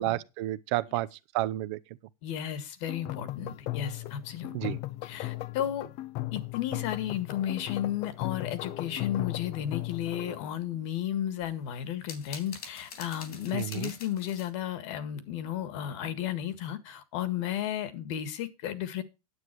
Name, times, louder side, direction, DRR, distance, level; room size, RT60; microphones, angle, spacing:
voice 1, 0.0-1.8 4.5-4.8 13.5-13.9, right 16 dB, 50° right, 0.7 m, -31 dB
voice 2, 2.2-5.9 6.3-19.0, left 10 dB, 50° left, 1.7 m, -33 dB
sound 1, 2.9-10.5, left 18 dB, 35° left, 0.4 m, -37 dB
sound 2, 11.4-14.5, left 6 dB, 80° left, 3.5 m, -45 dB
9.7 x 8.2 x 4.6 m
supercardioid pair, 150°, 19 cm